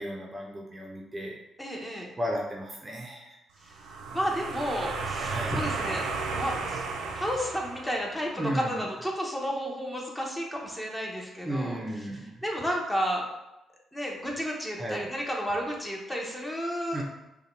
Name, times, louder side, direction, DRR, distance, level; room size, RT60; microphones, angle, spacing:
voice 1, 0.0-1.4 2.2-3.4 5.3-5.6 8.4-8.9 11.4-12.4 14.8-15.0 16.9-17.0, equal, 20° right, -1 dB, 0.6 m, -34 dB
voice 2, 1.6-2.1 3.6-6.0 6.3-6.8 7.1-11.8 12.1-13.3 13.9-17.0, equal, 10° left, -1 dB, 0.9 m, -32 dB
sound 1, 3.7-8.4, right 4 dB, 85° right, 0.5 m, -34 dB
5.4 x 2.2 x 3.2 m, 0.94 s
cardioid pair, 90°, 0 cm